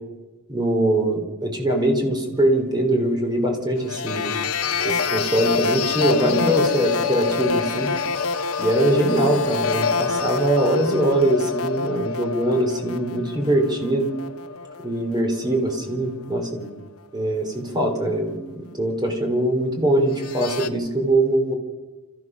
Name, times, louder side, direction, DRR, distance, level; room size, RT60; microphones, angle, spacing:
voice 1, 0.5-4.4 4.8-7.9 8.6-14.1 14.8-16.7 17.1-21.5, right 1 dB, 20° right, 3 dB, 3.8 m, -22 dB
sound 1, 3.8-15.3 15.6-16.0 20.1-20.7, left 5 dB, 80° left, 1.1 m, -26 dB
28.5 x 15.0 x 6.3 m, 1.2 s
head